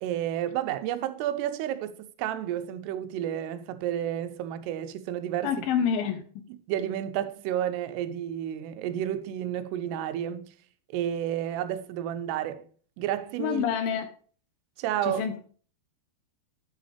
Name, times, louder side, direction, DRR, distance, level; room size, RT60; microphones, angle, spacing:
voice 1, 0.0-5.5 6.7-10.5 10.9-12.7 13.0-13.7 14.8-15.3, right 11 dB, 90° right, 2.8 m, -31 dB
voice 2, 5.4-6.2 13.4-14.1 15.0-15.4, left 8 dB, 75° left, 2.4 m, -27 dB
9.2 x 7.8 x 3.3 m
omnidirectional pair, 4.7 m